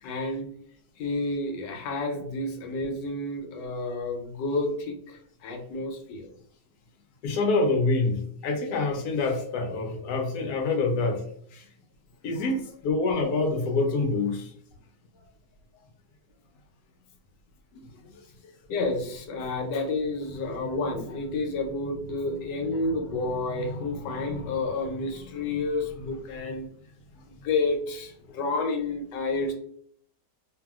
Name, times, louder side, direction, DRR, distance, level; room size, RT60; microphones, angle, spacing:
voice 1, 0.0-0.5 1.0-6.3 18.1-26.7 27.3-29.5, left 2 dB, 90° left, 3 dB, 1.3 m, -30 dB
voice 2, 7.2-11.2 11.5-11.7 12.2-14.5, left 3 dB, 70° left, 3 dB, 1.0 m, -26 dB
2.7 x 2.6 x 2.2 m, 0.64 s
omnidirectional pair, 1.9 m